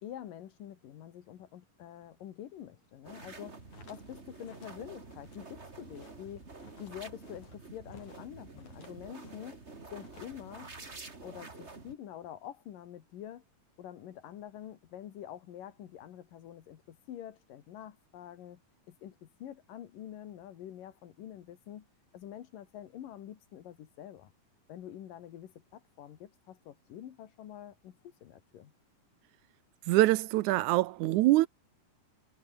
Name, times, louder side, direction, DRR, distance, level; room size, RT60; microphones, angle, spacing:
voice 1, 0.0-3.6 3.9-6.4 6.8-9.6 9.9-13.4 13.8-18.6 18.9-21.9 22.1-24.3 24.7-28.7, left 11 dB, 90° left, 3.4 m, -47 dB
sound 1, 3.0-11.9, right 3 dB, 20° right, 2.5 m, -49 dB
sound 2, 3.5-9.6 9.9-11.2, left 4 dB, 60° left, 7.3 m, -58 dB
voice 2, 29.9-31.5, right 17 dB, 75° right, 1.9 m, -24 dB
omnidirectional pair, 3.7 m